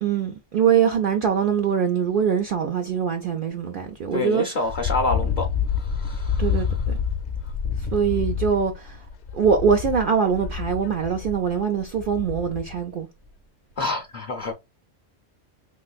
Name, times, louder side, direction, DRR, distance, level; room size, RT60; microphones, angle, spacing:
voice 1, 0.0-4.4 6.4-7.0 7.8-9.1 9.3-13.1, right 7 dB, 60° right, 0.6 m, -23 dB
voice 2, 4.1-6.8 8.1-8.4 13.8-14.5, left 3 dB, 45° left, 0.6 m, -28 dB
Wind, 4.6-12.8, left 7 dB, 65° left, 1.0 m, -28 dB
3.3 x 3.1 x 2.3 m
omnidirectional pair, 1.3 m